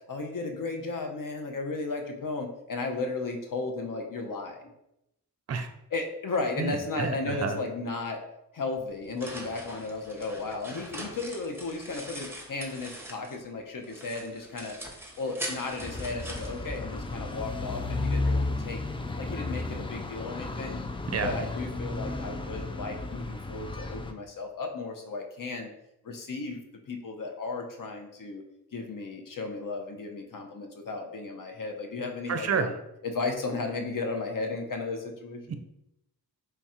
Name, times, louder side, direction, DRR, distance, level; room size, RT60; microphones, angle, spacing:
voice 1, 0.1-4.6 5.9-8.2 8.5-14.7 15.2-18.8 19.2-20.8 21.2-25.7 26.0-26.6 26.9-28.4 28.7-32.7 33.0-35.5, left 3 dB, 50° left, 4 dB, 0.7 m, -34 dB
voice 2, 6.6-7.6 21.1-21.3 32.3-32.7 35.5-35.6, right 6 dB, 40° right, 8 dB, 0.5 m, -29 dB
sound 1, 8.8-13.5 13.8-17.4, right 1 dB, 5° right, 0.8 m, -42 dB
sound 2, 15.8-24.1, left 2 dB, 15° left, 0.3 m, -33 dB
3.3 x 2.3 x 4.2 m, 0.84 s
cardioid pair, 50°, 40 cm